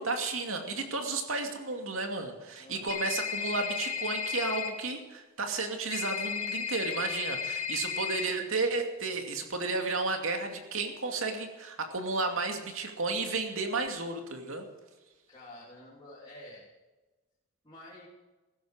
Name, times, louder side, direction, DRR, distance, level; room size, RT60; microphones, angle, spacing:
voice 1, 0.0-14.7, right 3 dB, 70° right, 4 dB, 2.5 m, -33 dB
voice 2, 2.6-3.0 15.3-16.7 17.6-18.1, left 1 dB, 20° left, -7 dB, 3.3 m, -49 dB
sound 1, 2.9-4.7 5.9-8.3, left 7 dB, 85° left, 2.2 m, -34 dB
15.5 x 13.5 x 5.1 m, 1.1 s
head